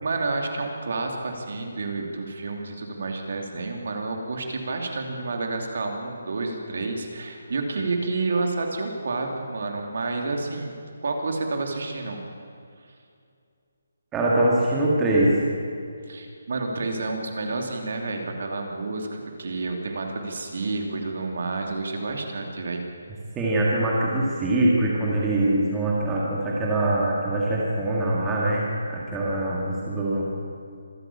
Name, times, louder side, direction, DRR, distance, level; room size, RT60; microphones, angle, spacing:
voice 1, 0.0-10.7 11.0-12.2 16.1-22.8, right 3 dB, 50° right, 2 dB, 2.9 m, -29 dB
voice 2, 14.1-15.3 23.4-30.3, right 1 dB, 5° right, -5 dB, 1.9 m, -23 dB
25.5 x 12.0 x 8.7 m, 2.4 s
hypercardioid pair, 180°, 0 cm